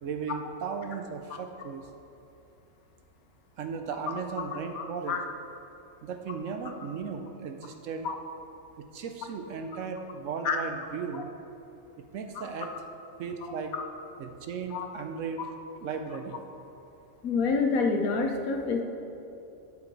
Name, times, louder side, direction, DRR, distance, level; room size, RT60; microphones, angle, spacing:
voice 1, 0.0-1.9 3.6-5.2 6.0-8.1 8.8-11.3 12.1-12.7 13.2-13.7 14.2-15.4 15.8-16.4, right 6 dB, 65° right, 6 dB, 0.9 m, -36 dB
voice 2, 4.8-5.2 8.0-8.2 10.4-10.6 14.7-14.9 17.2-18.8, left 4 dB, 75° left, 3 dB, 1.3 m, -27 dB
12.0 x 5.8 x 3.9 m, 2.9 s
omnidirectional pair, 1.5 m